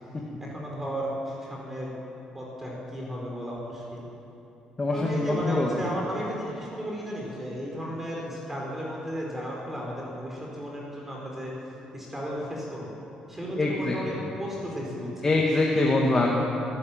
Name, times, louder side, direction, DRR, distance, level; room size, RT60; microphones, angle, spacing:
voice 1, 0.4-1.9 2.3-4.0 4.9-11.5 11.9-12.9 13.3-15.4, equal, 10° right, -3 dB, 4.7 m, -34 dB
voice 2, 4.8-5.7 13.6-13.9 15.2-16.3, left 2 dB, 20° left, -2 dB, 2.2 m, -23 dB
24.5 x 13.0 x 8.9 m, 2.9 s
cardioid pair, 140°, 2 cm